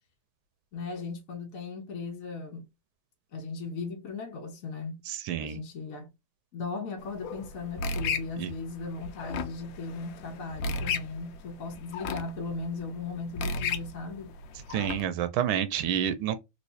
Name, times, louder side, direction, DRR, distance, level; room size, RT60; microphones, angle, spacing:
voice 1, 0.7-2.7 3.3-5.0 5.4-6.1 6.5-14.3, left 4 dB, 55° left, 1.0 m, -37 dB
voice 2, 5.1-5.6 8.4-8.5 14.7-16.4, right 9 dB, 85° right, 1.4 m, -29 dB
sound 1, 7.0-15.0, left 4 dB, 75° left, 1.3 m, -35 dB
3.3 x 3.1 x 2.6 m
omnidirectional pair, 2.2 m